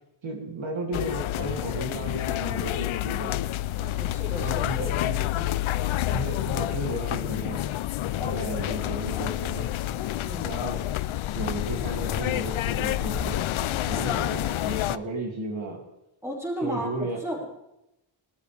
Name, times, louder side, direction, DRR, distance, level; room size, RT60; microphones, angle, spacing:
voice 1, 0.2-3.5 4.4-5.2 6.1-7.6 8.2-9.7 10.3-10.8 11.3-13.5 13.9-15.8 16.6-17.2, right 2 dB, 75° right, 1 dB, 2.5 m, -34 dB
sound 1, 0.9-15.0, left 14 dB, 85° left, 0.5 m, -28 dB
voice 2, 3.7-5.0 5.3-5.5 10.1-10.5 13.9-14.3 16.2-17.5, equal, 5° right, -3 dB, 4.8 m, -35 dB
sound 2, 13.0-15.6, equal, 15° left, 2.1 m, -45 dB
21.5 x 13.0 x 3.3 m, 0.88 s
wide cardioid pair, 140°, 47 cm